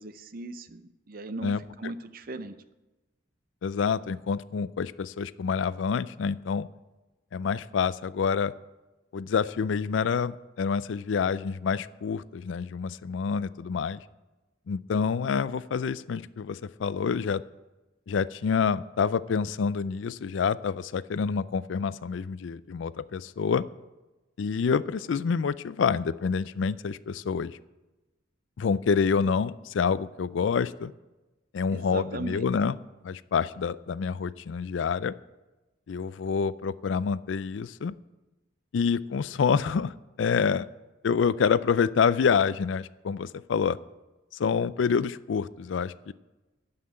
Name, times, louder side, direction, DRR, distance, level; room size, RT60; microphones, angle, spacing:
voice 1, 0.0-2.6 31.7-32.5, right 2 dB, 50° right, 11 dB, 0.6 m, -38 dB
voice 2, 1.4-1.9 3.6-6.7 7.3-8.5 9.1-14.0 14.7-17.4 18.1-23.6 24.4-27.6 28.6-30.9 31.5-32.8 33.0-35.1 35.9-37.9 38.7-40.7 41.0-43.8 44.4-46.1, left 6 dB, 75° left, 18 dB, 0.4 m, -27 dB
12.5 x 5.7 x 8.8 m, 1.1 s
head